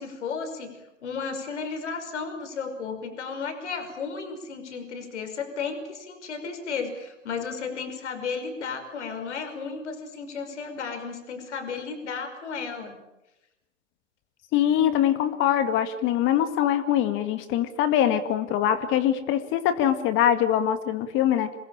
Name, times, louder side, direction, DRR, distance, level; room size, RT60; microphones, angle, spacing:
voice 1, 0.0-13.0, left 5 dB, 65° left, 8 dB, 5.6 m, -34 dB
voice 2, 14.5-21.6, left 10 dB, 30° left, 11 dB, 2.1 m, -23 dB
27.0 x 20.5 x 8.9 m, 0.94 s
figure-of-eight pair, 110°, 37 cm